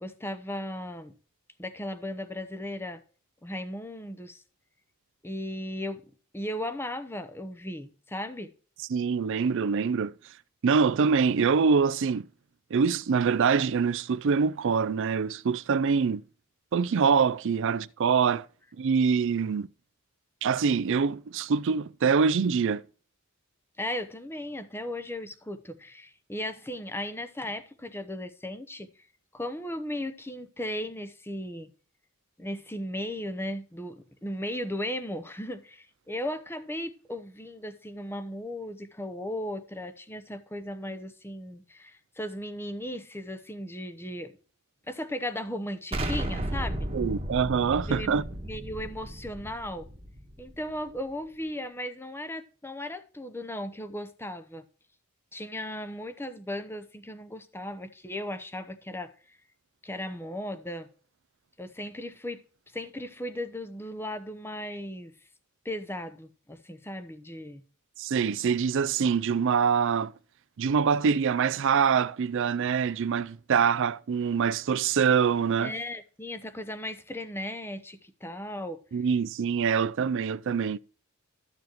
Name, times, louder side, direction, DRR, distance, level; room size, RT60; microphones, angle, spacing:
voice 1, 0.0-1.1 1.6-3.0 3.4-4.4 5.2-6.0 6.3-8.5 23.8-28.9 29.3-31.7 32.4-44.3 44.9-46.9 47.9-49.9 50.4-54.6 55.3-59.4 59.8-60.9 61.6-62.4 62.7-65.1 65.6-67.6 75.6-78.8, left 1 dB, 10° left, 0.8 m, -36 dB
voice 2, 8.9-10.1 10.6-12.3 12.7-16.2 16.7-18.5 18.8-19.7 20.4-22.8 46.9-48.2 68.0-70.1 70.6-75.7 78.9-80.8, right 6 dB, 60° right, 0.4 m, -24 dB
Explosion, 45.9-50.7, right 1 dB, 25° right, 1.3 m, -34 dB
13.0 x 7.0 x 3.0 m
head